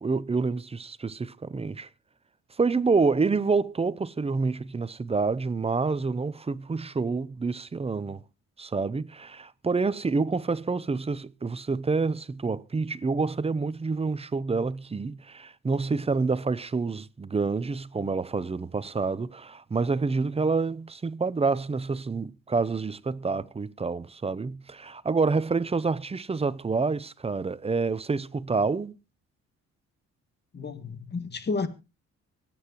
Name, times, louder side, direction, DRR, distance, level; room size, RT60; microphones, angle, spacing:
voice 1, 0.0-1.9 2.6-8.2 8.6-28.9, right 4 dB, 20° right, 0.7 m, -28 dB
voice 2, 30.5-31.7, left 4 dB, 35° left, 1.8 m, -31 dB
25.0 x 8.9 x 3.0 m
cardioid pair, 90°, 30 cm